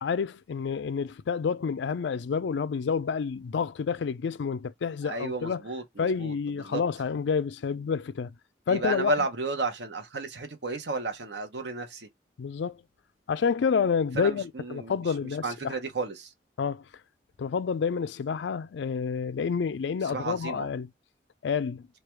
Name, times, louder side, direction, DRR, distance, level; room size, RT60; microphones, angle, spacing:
voice 1, 0.0-5.6 6.0-8.3 8.7-9.1 12.4-12.8 13.3-15.7 16.6-16.8 17.4-20.9 21.4-21.9, left 6 dB, 80° left, 0.4 m, -29 dB
voice 2, 5.0-6.8 8.7-12.1 14.1-15.1 15.4-16.3 20.0-20.7, right 2 dB, 70° right, 0.9 m, -33 dB
3.3 x 2.3 x 4.4 m
head